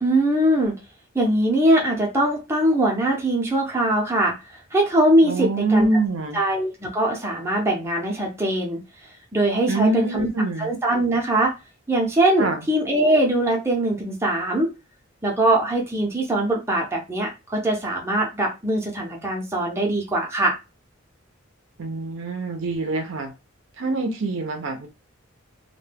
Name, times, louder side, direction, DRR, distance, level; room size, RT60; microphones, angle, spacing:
voice 1, 0.0-0.8 1.1-4.3 4.7-5.9 6.3-8.8 9.3-10.3 10.6-11.5 11.9-14.7 15.2-20.6, right 1 dB, 10° right, -2 dB, 0.6 m, -21 dB
voice 2, 5.2-6.4 9.7-10.7 12.4-12.6 21.8-23.3 23.8-24.9, right 2 dB, 65° right, 6 dB, 0.5 m, -24 dB
2.2 x 2.2 x 3.3 m, 0.27 s
head